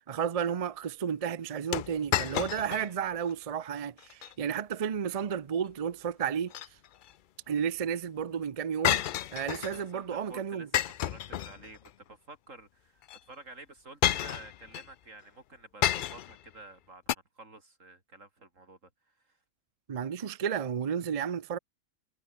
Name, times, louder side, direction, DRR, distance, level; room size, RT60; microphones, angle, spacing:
voice 1, 0.1-6.5 7.5-9.0 9.3-10.7 19.9-21.6, right 7 dB, 45° right, 0.4 m, -32 dB
sound 1, 1.7-2.9 3.3-3.4 4.0-4.3 6.2-7.1 8.8-9.8 10.7-11.9 13.0-13.2 14.0-14.9 15.8-16.4 17.1-17.2, left 11 dB, 90° left, 0.4 m, -30 dB
voice 2, 9.7-19.4, right 2 dB, 65° right, 4.6 m, -51 dB
omnidirectional pair, 1.4 m